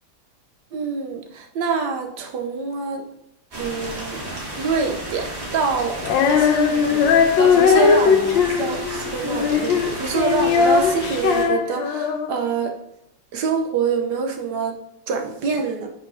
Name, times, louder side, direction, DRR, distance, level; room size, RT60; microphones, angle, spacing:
voice 1, 0.7-3.1 3.6-4.2 4.5-6.0 6.3-12.8 13.3-14.8 15.1-15.9, right 5 dB, 65° right, 3 dB, 1.5 m, -26 dB
sound 1, 3.5-11.4, right 1 dB, 35° right, 2.0 m, -32 dB
Female singing, 6.0-12.5, left 6 dB, 80° left, 1.5 m, -19 dB
10.5 x 5.8 x 2.8 m, 0.79 s
omnidirectional pair, 2.0 m